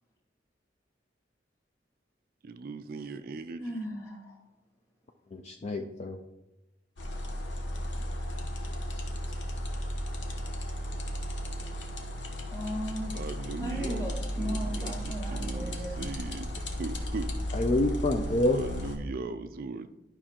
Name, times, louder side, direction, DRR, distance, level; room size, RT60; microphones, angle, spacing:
voice 1, 2.4-3.9 13.1-17.3 18.5-19.9, right 3 dB, 50° right, 10 dB, 0.3 m, -39 dB
voice 2, 3.6-4.3 12.5-13.2 13.6-16.1, equal, 20° left, -1 dB, 1.7 m, -37 dB
voice 3, 5.3-6.2 17.5-18.6, left 1 dB, 35° left, 4 dB, 0.4 m, -27 dB
sound 1, 7.0-19.0, equal, 75° left, 1.0 m, -35 dB
11.0 x 5.4 x 2.9 m, 0.97 s
head